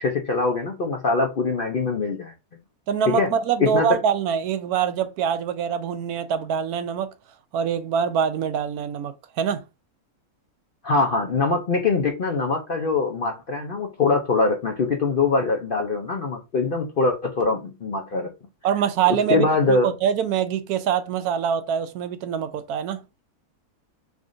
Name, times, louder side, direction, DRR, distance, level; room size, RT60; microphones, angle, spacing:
voice 1, 0.0-2.3 3.1-3.3 3.6-3.9 10.8-18.3 19.1-19.9, left 3 dB, 60° left, 0.5 m, -23 dB
voice 2, 2.9-7.1 7.5-9.6 18.6-23.0, right 8 dB, 75° right, 1.0 m, -24 dB
3.6 x 3.5 x 2.5 m
omnidirectional pair, 1.6 m